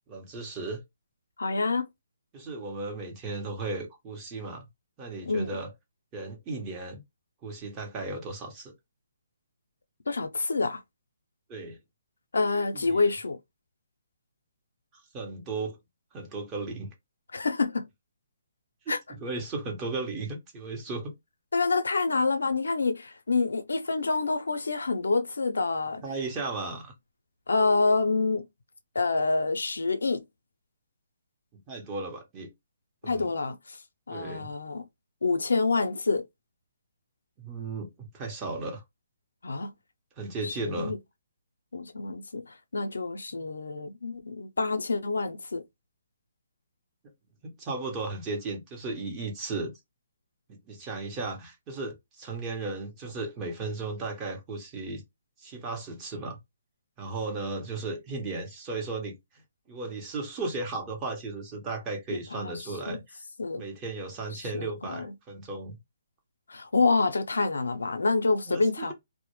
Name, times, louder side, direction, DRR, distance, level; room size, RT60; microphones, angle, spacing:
voice 1, 0.1-0.8 2.3-4.7 5.0-5.7 6.1-7.0 7.4-8.7 11.5-11.8 12.7-13.1 15.1-15.8 16.1-16.9 18.9-21.1 26.0-26.9 31.7-32.5 33.0-33.3 34.1-34.5 37.4-38.8 40.2-40.9 47.4-49.7 50.5-55.0 55.4-56.4 57.0-59.2 59.7-63.2 63.6-65.8 68.5-68.9, right 3 dB, 20° right, 0.8 m, -35 dB
voice 2, 1.4-1.9 5.3-5.6 10.1-10.8 12.3-13.4 17.3-17.8 18.9-19.0 21.5-26.0 27.5-28.4 28.9-30.2 33.1-33.8 34.1-34.8 35.2-36.2 39.4-39.7 40.4-41.0 41.7-45.6 62.1-62.5 62.9-63.0 63.4-63.6 64.3-65.1 66.5-68.9, left 3 dB, 85° left, 0.5 m, -27 dB
2.1 x 2.0 x 3.0 m
hypercardioid pair, 150°, 0 cm